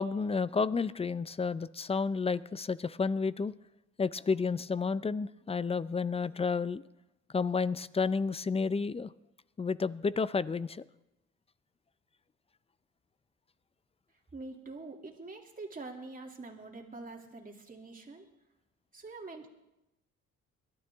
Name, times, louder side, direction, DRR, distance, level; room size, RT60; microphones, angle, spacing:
voice 1, 0.0-3.5 4.0-6.8 7.3-9.1 9.6-10.8, left 4 dB, 20° left, 17 dB, 0.4 m, -31 dB
voice 2, 14.3-18.3 18.9-19.5, right 3 dB, 30° right, 1 dB, 2.5 m, -45 dB
22.0 x 12.0 x 3.5 m, 0.93 s
cardioid pair, 90°, 30 cm